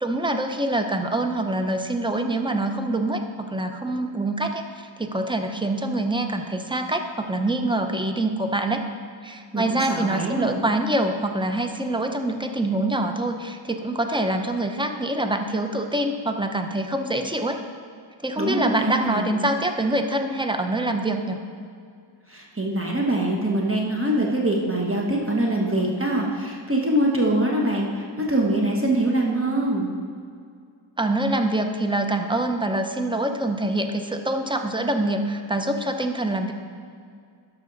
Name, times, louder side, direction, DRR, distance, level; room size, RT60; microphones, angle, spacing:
voice 1, 0.0-3.2 3.5-4.6 5.0-8.8 9.2-17.6 18.2-21.4 31.0-36.5, right 1 dB, 10° right, 5 dB, 0.7 m, -25 dB
voice 2, 9.5-10.6 18.4-19.3 22.3-29.9, right 1 dB, 30° right, -1 dB, 1.2 m, -24 dB
12.0 x 6.2 x 4.0 m, 2.3 s
wide cardioid pair, 55°, 47 cm